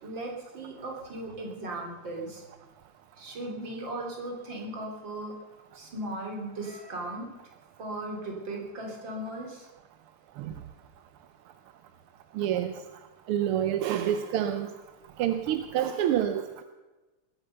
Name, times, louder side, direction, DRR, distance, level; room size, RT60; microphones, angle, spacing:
voice 1, 0.0-2.4 3.2-5.3 5.7-7.3 7.8-9.7, right 1 dB, 55° right, 0 dB, 3.9 m, -37 dB
voice 2, 12.4-12.7 13.3-14.7 15.2-16.6, right 10 dB, 85° right, 9 dB, 1.6 m, -27 dB
20.5 x 9.1 x 6.7 m, 1.1 s
omnidirectional pair, 2.4 m